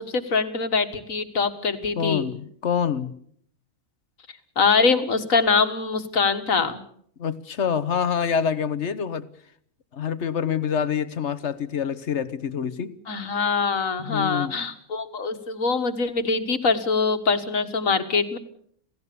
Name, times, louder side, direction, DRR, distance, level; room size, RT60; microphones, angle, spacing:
voice 1, 0.0-2.3 4.6-6.8 13.1-18.4, left 4 dB, 85° left, 8 dB, 2.1 m, -23 dB
voice 2, 2.0-3.1 7.2-9.3 9.9-12.9 14.0-14.6, left 7 dB, 60° left, 15 dB, 1.4 m, -26 dB
27.5 x 17.0 x 6.9 m, 0.64 s
omnidirectional pair, 1.4 m